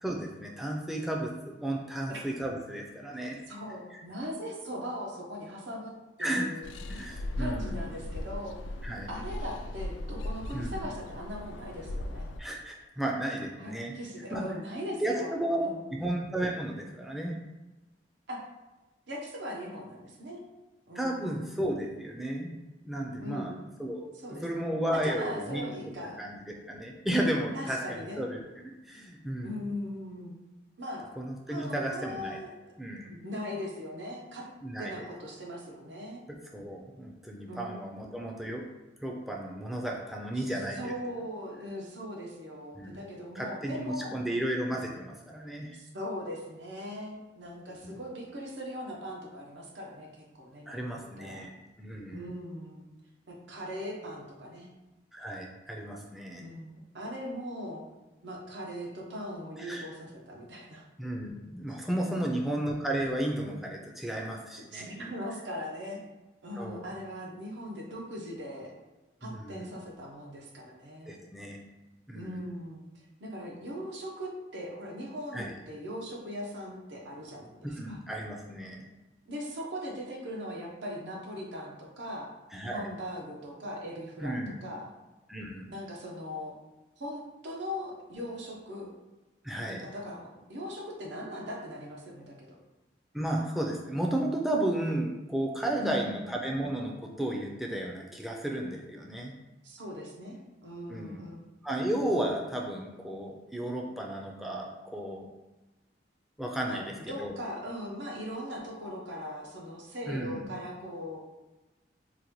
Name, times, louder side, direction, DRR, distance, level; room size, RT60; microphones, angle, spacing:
voice 1, 0.0-3.4 3.9-4.0 6.2-6.5 6.9-7.9 8.8-9.1 10.5-10.9 12.4-13.9 14.3-14.4 15.0-15.6 15.9-17.3 21.0-22.5 22.8-23.5 23.8-24.1 24.4-25.6 26.2-28.4 28.9-29.6 31.2-32.4 32.8-33.1 34.6-34.9 36.5-38.6 39.0-40.9 42.7-43.0 43.3-45.8 47.8-48.0 50.7-51.5 51.8-52.3 55.1-56.4 59.6-59.9 61.0-64.9 66.6-66.9 69.2-69.7 71.1-71.6 72.1-72.4 75.3-75.5 77.6-78.8 82.5-82.9 84.2-84.5 85.3-85.7 89.4-89.9 93.1-99.3 100.9-101.2 101.6-105.3 106.4-106.8 107.2-107.3 110.1-110.5, right 1 dB, ahead, -1 dB, 0.3 m, -33 dB
voice 2, 3.5-5.9 6.2-6.7 7.4-8.6 9.1-12.3 13.6-15.3 15.6-15.9 18.3-18.4 19.1-20.4 20.9-21.5 23.2-23.6 24.1-26.2 27.5-28.2 29.4-30.4 30.8-31.1 31.5-32.5 33.1-34.5 34.8-36.3 37.5-37.6 40.4-40.5 40.8-44.3 45.7-51.5 52.1-52.8 53.3-54.7 56.4-57.8 58.2-60.8 62.1-62.6 64.7-66.0 66.4-68.7 69.2-71.2 72.1-72.8 73.2-77.5 77.8-78.0 79.3-82.3 82.7-84.9 85.7-86.6 87.0-88.9 89.7-92.6 95.8-96.2 99.6-101.4 106.7-111.2, equal, 80° right, -1 dB, 0.7 m, -40 dB
sound 1, 6.6-12.4, left 1 dB, 90° left, 0.3 m, -37 dB
4.0 x 2.2 x 3.0 m, 1.1 s
head